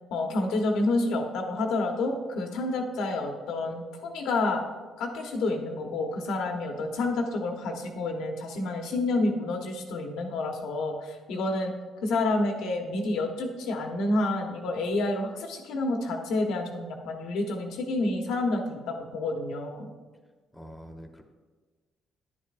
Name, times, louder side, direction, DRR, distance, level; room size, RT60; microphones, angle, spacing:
voice 1, 0.1-4.6 5.0-11.7 12.0-19.8, left 2 dB, 90° left, 3 dB, 1.2 m, -29 dB
voice 2, 20.5-21.2, equal, 10° left, 3 dB, 1.1 m, -45 dB
10.5 x 9.9 x 2.5 m, 1.4 s
cardioid pair, 90°, 0 cm